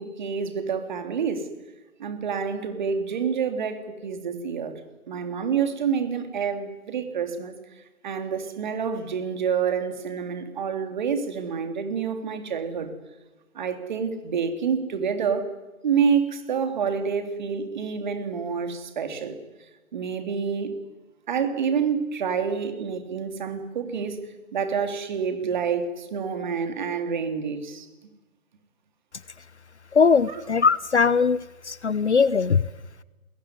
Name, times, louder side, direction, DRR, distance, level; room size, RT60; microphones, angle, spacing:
voice 1, 0.0-1.5 2.0-4.8 5.1-7.5 8.0-12.9 13.5-15.5 15.8-19.4 19.9-20.8 21.3-24.2 24.5-27.9 30.3-30.4, right 6 dB, 30° right, 8 dB, 3.3 m, -28 dB
voice 2, 29.9-32.6, left 5 dB, 50° left, 20 dB, 0.9 m, -20 dB
29.0 x 21.0 x 9.7 m, 1.1 s
figure-of-eight pair, 155°, 43 cm